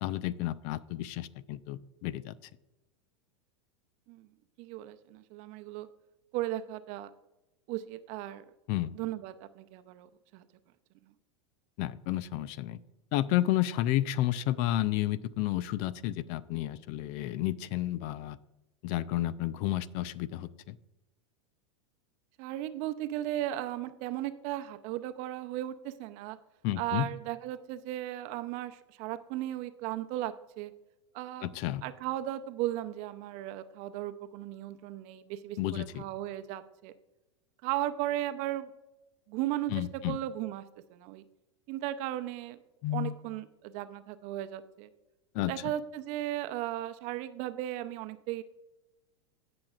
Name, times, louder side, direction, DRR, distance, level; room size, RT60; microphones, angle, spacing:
voice 1, 0.0-2.3 8.7-8.9 11.8-12.8 13.1-18.4 18.8-20.8 26.6-27.1 31.4-31.8 35.6-36.0 39.7-40.2 42.8-43.1 45.3-45.5, left 14 dB, 50° left, 18 dB, 0.4 m, -31 dB
voice 2, 4.6-5.9 6.3-7.1 7.7-8.5 8.9-10.4 22.4-26.4 26.8-30.7 31.1-31.5 31.8-36.9 37.6-38.7 39.3-40.6 40.9-41.2 41.7-42.6 42.9-44.9 45.4-48.4, right 14 dB, 50° right, 10 dB, 0.7 m, -36 dB
16.0 x 6.1 x 2.4 m, 1.0 s
hypercardioid pair, 105°, 15 cm